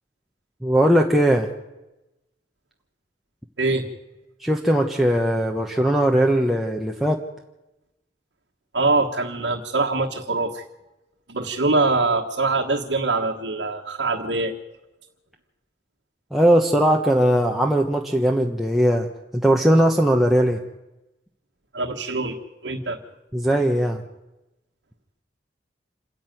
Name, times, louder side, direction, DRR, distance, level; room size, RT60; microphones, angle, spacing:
voice 1, 0.6-1.5 4.4-7.2 16.3-19.1 19.3-20.6 23.3-24.0, right 1 dB, ahead, 0 dB, 1.1 m, -19 dB
voice 2, 8.7-10.6 11.3-14.5 21.7-22.3 22.6-23.0, right 3 dB, 80° right, -1 dB, 1.5 m, -23 dB
27.0 x 10.5 x 9.2 m, 0.98 s
head